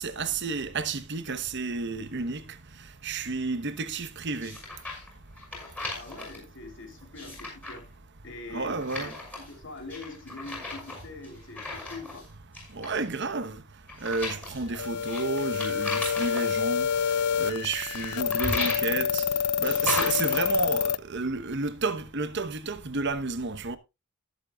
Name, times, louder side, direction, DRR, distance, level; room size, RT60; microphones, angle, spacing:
voice 1, 0.0-2.4 3.0-4.6 8.5-9.1 12.8-13.6 14.0-16.9 17.4-19.2 19.6-23.8, right 3 dB, 50° right, 1.1 m, -31 dB
sound 1, 4.4-5.1 5.4-6.4 7.0-7.8 8.8-9.5 9.9-12.3 12.5-13.1 13.9-16.4 17.9-18.9 19.6-20.4, left 2 dB, 5° left, 5.7 m, -35 dB
voice 2, 5.9-7.9 8.2-9.1 9.5-12.2 14.7-14.8, left 3 dB, 55° left, 3.3 m, -43 dB
sound 2, 14.8-21.0, left 8 dB, 90° left, 0.4 m, -27 dB
19.0 x 7.6 x 2.4 m
head